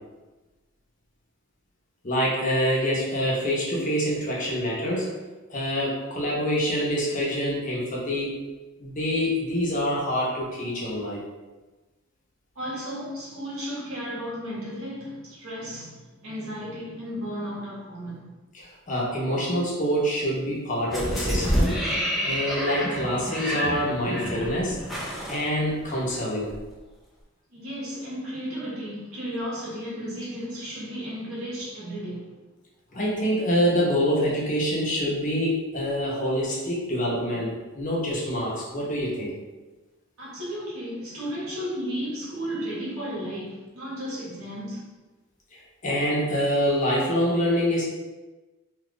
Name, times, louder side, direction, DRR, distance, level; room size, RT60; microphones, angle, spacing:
voice 1, 2.0-5.2 5.5-8.4 8.8-11.2 18.5-21.8 22.2-24.8 25.3-26.6 32.9-39.4 45.8-47.8, equal, 35° left, 0.8 m, -26 dB
voice 2, 12.5-18.3 27.5-32.4 40.2-44.9, equal, 90° right, 1.3 m, -34 dB
sound 1, 20.9-26.1 26.5-26.6, equal, ahead, 0.4 m, -28 dB
2.8 x 2.3 x 3.7 m
head